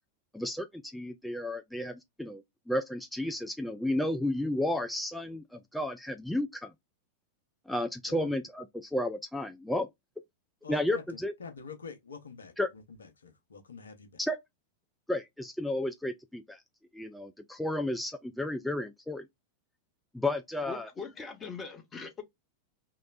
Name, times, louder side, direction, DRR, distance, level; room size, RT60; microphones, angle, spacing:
voice 1, 0.3-6.7 7.7-9.9 10.7-11.3 12.6-12.7 14.2-14.4 15.1-16.6 16.9-19.3 20.1-20.9, left 1 dB, 5° left, 0.3 m, -32 dB
voice 2, 10.6-14.1, left 5 dB, 70° left, 0.8 m, -46 dB
voice 3, 20.7-22.2, left 4 dB, 20° left, 0.8 m, -41 dB
3.0 x 3.0 x 2.4 m
figure-of-eight pair, 90°, 0 cm